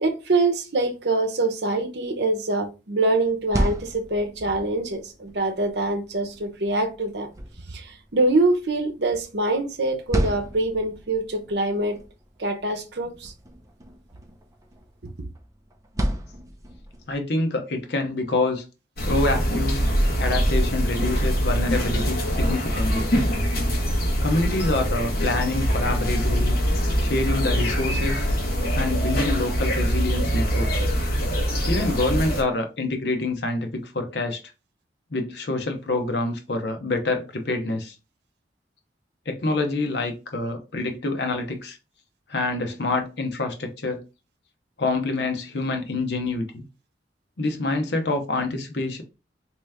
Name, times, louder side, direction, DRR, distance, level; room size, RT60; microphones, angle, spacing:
voice 1, 0.0-7.3 7.7-12.0 12.4-13.3, right 2 dB, 70° right, 0.8 m, -24 dB
sound 1, 3.2-17.2, equal, 20° right, 0.6 m, -34 dB
voice 2, 17.1-18.6 19.0-19.9 20.2-23.1 24.2-26.6 27.0-28.3 28.7-30.8 31.7-34.4 35.1-37.9 39.3-41.8 42.3-44.0 44.8-46.6 47.4-49.0, left 2 dB, 70° left, 0.8 m, -26 dB
sound 2, 19.0-32.4, equal, 55° left, 1.1 m, -23 dB
3.3 x 2.9 x 3.4 m
head